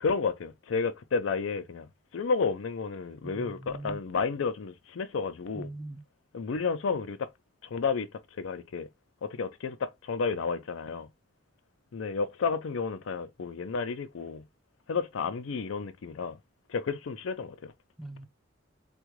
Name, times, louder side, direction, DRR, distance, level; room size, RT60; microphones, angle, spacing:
voice 1, 0.0-5.7 6.3-7.3 7.6-8.1 8.4-8.9 9.2-11.1 11.9-14.5 14.9-16.4 16.7-17.7, left 5 dB, 90° left, 0.5 m, -31 dB
voice 2, 3.2-4.1 5.5-6.0 18.0-18.3, right 1 dB, ahead, 0.5 m, -41 dB
3.6 x 2.2 x 3.0 m
head